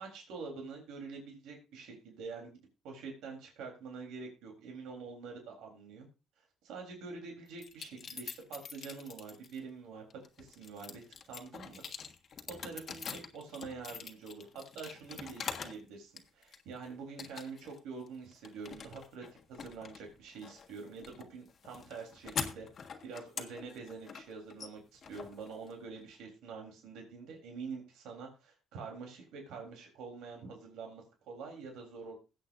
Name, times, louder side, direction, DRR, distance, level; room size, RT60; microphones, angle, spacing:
voice 1, 0.0-6.1 6.6-10.0 10.4-11.0 11.3-11.8 12.5-14.5 14.7-22.7 23.0-32.1, right 4 dB, 85° right, 1 dB, 3.5 m, -46 dB
sound 1, 7.6-9.6 10.1-15.8 16.2-16.8 17.2-17.8 18.1-26.0, left 6 dB, 50° left, 1.5 m, -44 dB
20.0 x 8.1 x 2.6 m, 0.31 s
cardioid pair, 95°, 0 cm